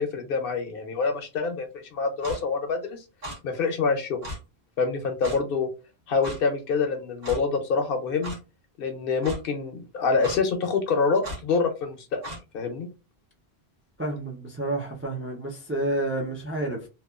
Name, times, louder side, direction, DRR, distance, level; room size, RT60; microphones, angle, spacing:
voice 1, 0.0-3.0 3.4-4.2 4.8-5.7 6.1-8.3 8.8-12.2 12.5-12.9, left 4 dB, 65° left, 6 dB, 0.7 m, -26 dB
Clock, 2.2-2.4 3.2-3.4 4.2-4.4 5.2-5.4 6.2-6.4 7.2-7.4 8.2-8.4 9.2-9.4 10.2-10.4 11.2-11.4 12.2-12.4, equal, 65° right, 1.1 m, -35 dB
voice 2, 14.0-16.9, right 1 dB, 20° right, 0 dB, 0.3 m, -29 dB
2.9 x 2.2 x 2.3 m, 0.30 s
omnidirectional pair, 1.1 m